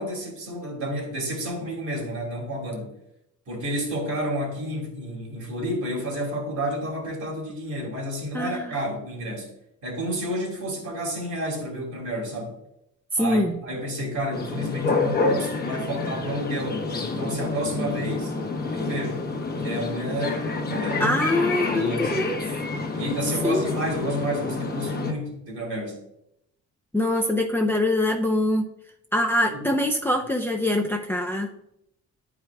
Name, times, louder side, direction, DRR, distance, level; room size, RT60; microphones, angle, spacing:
voice 1, 0.0-2.9 3.5-9.5 9.8-12.6 13.2-18.3 18.7-19.2 19.5-21.2 21.7-22.2 23.0-26.0 29.5-29.6, equal, 75° right, -1 dB, 2.5 m, -30 dB
voice 2, 8.3-8.7 13.1-13.5 17.8-17.9 21.0-22.4 23.4-23.7 26.9-28.7 29.1-31.5, left 1 dB, 5° left, 2 dB, 0.5 m, -24 dB
sound 1, 14.3-25.1, left 3 dB, 30° left, 0.9 m, -28 dB
10.0 x 4.8 x 2.3 m, 0.79 s
cardioid pair, 90°, 30 cm